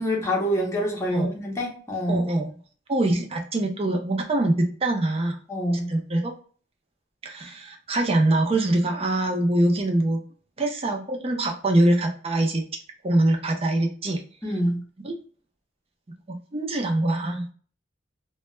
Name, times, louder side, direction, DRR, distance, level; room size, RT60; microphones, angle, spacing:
voice 1, 0.0-2.2 5.5-5.9 14.4-14.8, equal, 15° left, -1 dB, 0.7 m, -26 dB
voice 2, 2.1-2.5 2.9-5.4 5.9-6.3 7.2-10.2 10.6-12.6 13.0-14.2 15.0-15.2 16.5-17.5, right 1 dB, 30° right, 2 dB, 0.5 m, -23 dB
2.2 x 2.2 x 3.0 m, 0.43 s
head